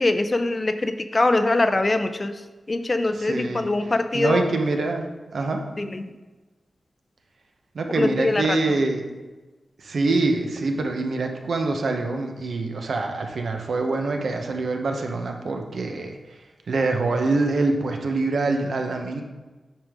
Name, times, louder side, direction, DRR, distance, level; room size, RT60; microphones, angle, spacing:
voice 1, 0.0-2.3 2.7-4.5 5.8-6.1 7.9-8.7, left 2 dB, 30° left, 9 dB, 0.5 m, -23 dB
voice 2, 3.1-3.6 4.1-5.1 5.3-5.6 7.7-9.0 9.8-16.1 16.7-19.2, right 3 dB, 70° right, 4 dB, 0.9 m, -25 dB
8.7 x 5.2 x 3.6 m, 1.2 s
wide cardioid pair, 115°, 0 cm